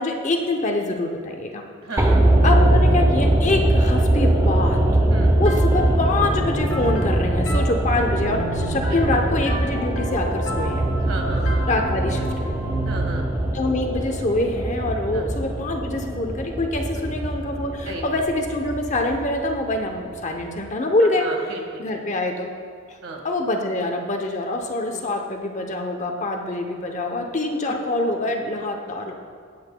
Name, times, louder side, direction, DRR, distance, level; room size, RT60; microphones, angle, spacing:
voice 1, 0.0-1.6 1.9-2.1 2.4-4.8 5.4-10.8 11.7-12.6 13.5-21.3 21.8-22.5 22.9-23.0 23.2-29.1, left 2 dB, 35° left, 3 dB, 0.7 m, -25 dB
voice 2, 1.8-2.2 5.1-5.3 11.0-11.7 12.8-13.2 15.1-15.2 17.9-18.1 21.2-22.0 23.0-23.2 24.9-25.0 27.7-27.8, right 2 dB, 80° right, 1 dB, 1.6 m, -34 dB
sound 1, 2.0-20.2 20.4-20.5, right 1 dB, 15° right, 0.6 m, -22 dB
sound 2, 5.5-15.0, right 1 dB, 70° left, 1.5 m, -32 dB
18.0 x 7.8 x 2.2 m, 2.1 s
head